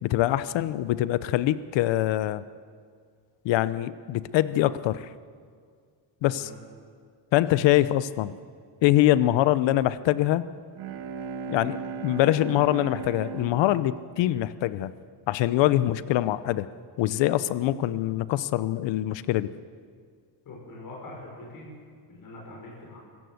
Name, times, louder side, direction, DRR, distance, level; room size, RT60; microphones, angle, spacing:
voice 1, 0.0-2.4 3.4-5.1 6.2-6.4 7.3-8.4 8.8-10.4 11.5-14.9 15.3-16.7 17.0-19.5, left 14 dB, 85° left, 16 dB, 0.9 m, -24 dB
voice 2, 6.2-6.6 20.4-21.7 22.0-23.0, left 2 dB, 50° left, -2 dB, 6.1 m, -43 dB
Bowed string instrument, 10.6-15.3, right 5 dB, 65° right, 2.1 m, -38 dB
25.0 x 15.5 x 7.9 m, 2.1 s
cardioid pair, 155°, 43 cm